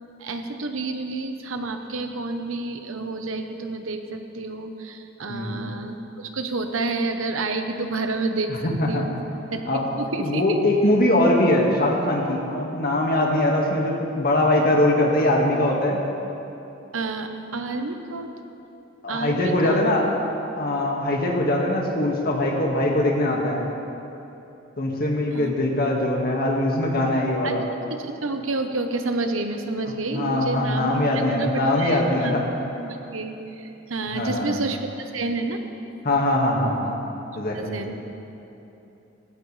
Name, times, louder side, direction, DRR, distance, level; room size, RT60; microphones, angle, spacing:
voice 1, 0.2-8.6 8.9-9.2 9.5-10.6 16.9-18.3 19.1-19.8 25.3-25.5 27.4-27.5 27.9-32.3 32.8-35.6 37.5-37.9, right 3 dB, 85° right, 6 dB, 1.1 m, -29 dB
voice 2, 5.3-5.6 8.5-9.1 9.7-9.8 10.2-16.0 19.0-20.1 20.6-23.6 24.8-27.6 30.1-32.5 34.1-34.6 36.0-37.0 37.4-37.8, left 1 dB, 50° left, -1 dB, 1.9 m, -22 dB
17.5 x 16.0 x 3.4 m, 3.0 s
head